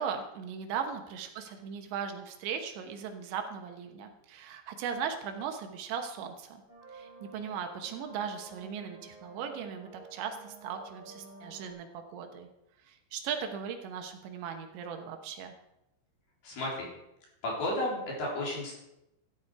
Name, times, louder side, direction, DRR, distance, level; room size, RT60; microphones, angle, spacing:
voice 1, 0.0-6.6 6.9-12.5 12.8-15.5, right 7 dB, 75° right, 5 dB, 3.2 m, -38 dB
sound 1, 6.7-11.7, right 4 dB, 25° right, 2.2 m, -51 dB
voice 2, 16.4-16.9 17.4-18.7, left 1 dB, 55° left, -2 dB, 4.9 m, -32 dB
14.0 x 10.5 x 4.8 m, 0.87 s
omnidirectional pair, 5.6 m